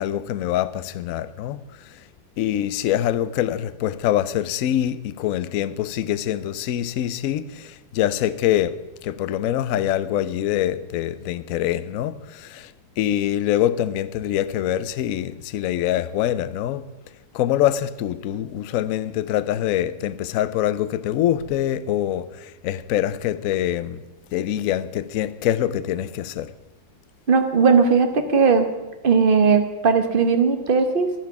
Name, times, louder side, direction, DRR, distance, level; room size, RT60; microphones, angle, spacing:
voice 1, 0.0-2.0 2.4-16.9 17.3-24.0 24.3-26.5, left 11 dB, 80° left, 0.7 m, -24 dB
voice 2, 27.3-28.7 29.0-31.1, right 5 dB, 35° right, 1.0 m, -18 dB
12.0 x 10.5 x 6.0 m
omnidirectional pair, 2.0 m